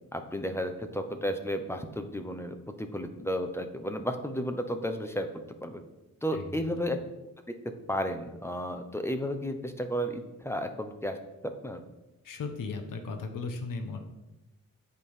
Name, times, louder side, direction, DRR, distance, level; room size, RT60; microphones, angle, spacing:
voice 1, 0.1-5.3 5.6-5.8 6.2-7.0 7.9-11.2 11.4-11.8, equal, 5° left, 7 dB, 1.0 m, -33 dB
voice 2, 6.3-6.7 12.2-14.0, left 4 dB, 70° left, 6 dB, 1.4 m, -36 dB
8.8 x 8.3 x 5.7 m, 0.97 s
wide cardioid pair, 145°, 34 cm